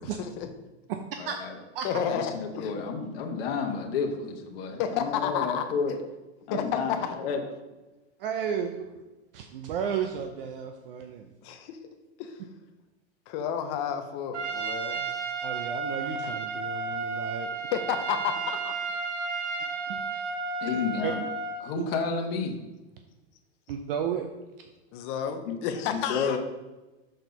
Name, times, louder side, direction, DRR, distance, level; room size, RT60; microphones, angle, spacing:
voice 1, 0.0-0.5 1.8-2.7 4.8-5.6 6.5-7.2 11.4-11.8 12.2-12.3 13.3-15.0 17.7-18.8 20.7-20.8 24.9-26.4, left 8 dB, 25° left, 7 dB, 0.5 m, -31 dB
voice 2, 1.2-1.6 1.9-6.0 6.5-7.4 20.6-21.2 21.6-22.6 25.5-26.4, left 5 dB, 55° left, 2 dB, 1.2 m, -31 dB
voice 3, 8.2-8.9 9.3-11.3 15.4-17.5 19.9-20.0 21.0-21.1 23.7-24.3, right 8 dB, 55° right, 5 dB, 0.6 m, -33 dB
Trumpet, 14.3-21.7, right 4 dB, 80° right, 1.1 m, -33 dB
6.4 x 4.5 x 5.2 m, 1.1 s
supercardioid pair, 160°, 35 cm